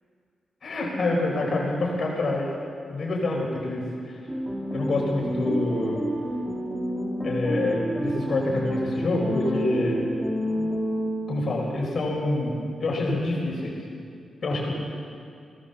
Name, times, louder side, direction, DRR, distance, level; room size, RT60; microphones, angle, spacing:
voice 1, 0.6-2.5 2.9-4.2 4.7-6.0 7.2-10.0 11.3-13.8 14.4-14.8, left 2 dB, 50° left, -2 dB, 4.9 m, -26 dB
sound 1, 4.3-11.6, equal, 10° right, 2.7 m, -29 dB
21.5 x 17.5 x 7.1 m, 2.4 s
cardioid pair, 80°, 0 cm